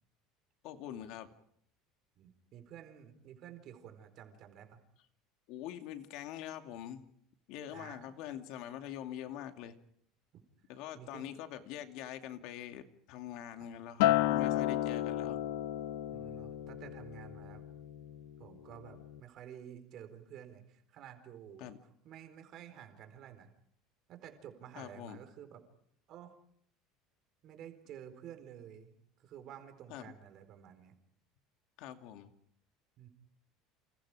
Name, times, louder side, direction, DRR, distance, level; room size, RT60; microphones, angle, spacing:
voice 1, 0.6-1.3 5.5-7.1 7.5-9.8 10.7-15.4 21.6-21.8 24.8-25.2 29.9-30.1 31.8-32.3, left 11 dB, 55° left, 7 dB, 2.5 m, -44 dB
voice 2, 2.2-4.8 7.7-8.1 10.9-11.2 13.6-13.7 14.1-14.6 16.1-17.7 18.4-23.5 24.1-25.6 26.1-26.4 27.4-30.9 33.0-33.1, right 9 dB, 40° right, 8 dB, 4.3 m, -51 dB
Acoustic guitar, 14.0-18.4 18.8-19.2, left 14 dB, 80° left, 1.3 m, -33 dB
29.5 x 28.0 x 5.0 m, 0.68 s
cardioid pair, 170°, 0 cm